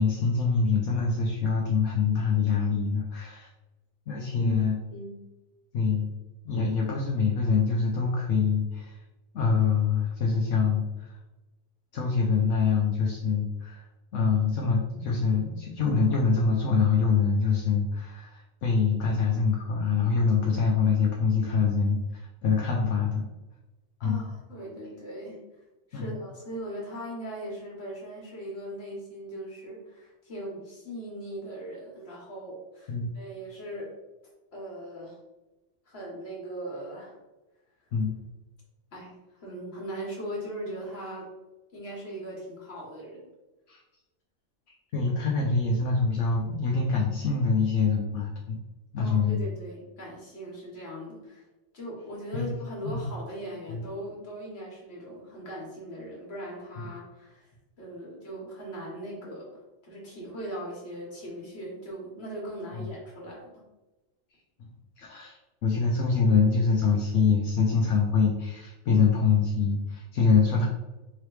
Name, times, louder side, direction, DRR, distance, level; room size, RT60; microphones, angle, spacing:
voice 1, 0.0-3.5 4.1-4.7 5.7-6.1 6.4-9.0 9.3-11.1 11.9-13.9 14.1-23.2 24.0-24.2 25.9-26.2 32.9-33.1 37.9-38.1 43.7-43.8 44.7-48.6 48.9-49.4 52.3-52.5 52.8-53.1 53.7-53.8 65.0-70.7, left 5 dB, 75° left, -1 dB, 1.0 m, -25 dB
voice 2, 4.4-5.2 24.0-25.4 25.9-33.9 34.5-35.2 35.8-37.1 38.9-41.3 41.7-43.3 49.0-51.4 51.7-57.5 57.8-63.6, equal, 55° left, -3 dB, 1.6 m, -39 dB
3.8 x 3.2 x 3.1 m, 1.1 s
omnidirectional pair, 1.3 m